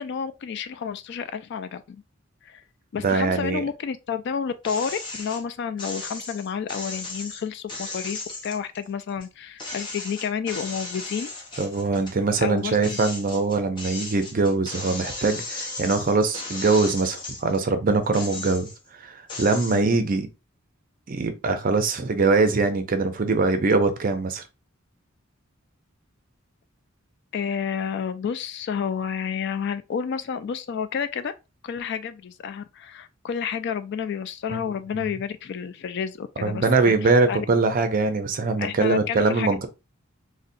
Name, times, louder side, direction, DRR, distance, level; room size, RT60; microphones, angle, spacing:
voice 1, 0.0-2.0 2.4-2.6 2.9-11.3 12.4-13.0 19.7-20.0 27.3-31.3 31.6-37.5 38.6-39.7, left 7 dB, 55° left, 0.3 m, -30 dB
voice 2, 3.0-3.6 11.6-18.7 19.0-20.3 21.1-24.4 34.5-34.6 34.9-35.0 36.4-39.7, right 3 dB, 45° right, 0.5 m, -22 dB
sound 1, 4.6-5.4 5.8-9.3 9.6-12.2 12.6-17.6 18.0-18.9 19.3-19.8, left 2 dB, 25° left, 0.9 m, -36 dB
3.9 x 2.1 x 2.5 m
head